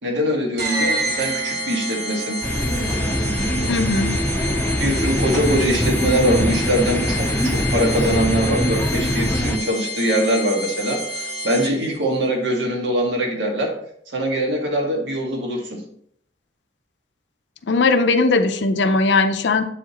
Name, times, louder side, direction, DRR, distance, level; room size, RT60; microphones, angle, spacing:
voice 1, 0.0-2.4 4.8-13.7 14.1-15.8, equal, 85° right, 0 dB, 1.7 m, -22 dB
sound 1, 0.6-12.0, equal, 65° right, 1.2 m, -29 dB
sound 2, 2.4-9.6, left 1 dB, 10° left, 0.5 m, -22 dB
voice 2, 3.7-4.2 17.7-19.6, left 3 dB, 90° left, 9 dB, 0.6 m, -18 dB
7.8 x 5.0 x 3.0 m, 0.66 s
head